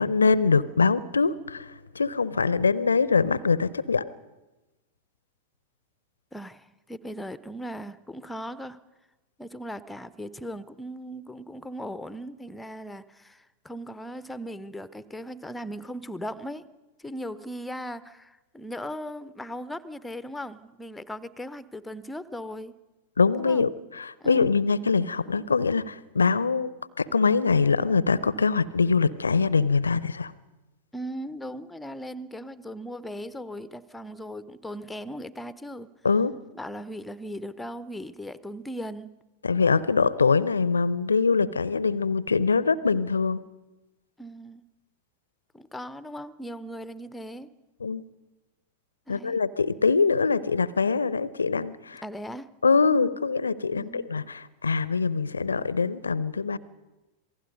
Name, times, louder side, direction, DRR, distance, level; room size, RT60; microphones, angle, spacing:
voice 1, 0.0-4.1 23.2-26.7 27.0-30.3 36.0-36.3 39.4-43.4 47.8-48.0 49.1-52.0 52.6-56.6, left 4 dB, 75° left, 0.6 m, -23 dB
voice 2, 6.3-8.8 9.4-16.7 17.0-22.7 23.4-23.7 24.2-24.6 30.9-35.9 36.5-39.1 44.2-44.7 45.5-47.6 49.1-49.4 52.0-52.5 53.7-54.1, equal, 5° left, 0.8 m, -38 dB
27.0 x 18.5 x 5.3 m
figure-of-eight pair, 90°, 0 cm